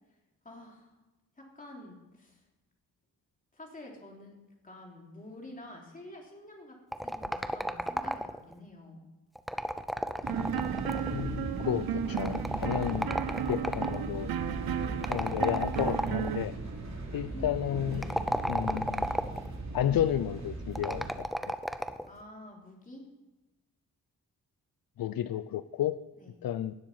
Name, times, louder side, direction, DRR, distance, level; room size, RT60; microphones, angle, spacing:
voice 1, 0.4-0.9 1.4-2.4 3.5-4.3 4.6-6.8 7.0-9.0 17.3-18.2 22.0-23.1 26.2-26.4, left 1 dB, 20° left, -1 dB, 3.3 m, -48 dB
sound 1, 6.9-8.5 9.4-11.2 12.2-14.0 15.0-16.4 17.9-19.5 20.8-22.1, equal, ahead, 0.6 m, -33 dB
sound 2, 10.2-21.1, right 2 dB, 50° right, 3.1 m, -38 dB
sound 3, 10.3-16.5, right 9 dB, 80° right, 0.6 m, -35 dB
voice 2, 11.1-13.1 13.5-14.3 15.1-16.5 17.1-18.0 18.5-19.1 19.7-21.5 25.0-26.0 26.4-26.7, left 11 dB, 75° left, 13 dB, 0.5 m, -32 dB
18.0 x 7.6 x 5.6 m, 1.1 s
wide cardioid pair, 135°, 36 cm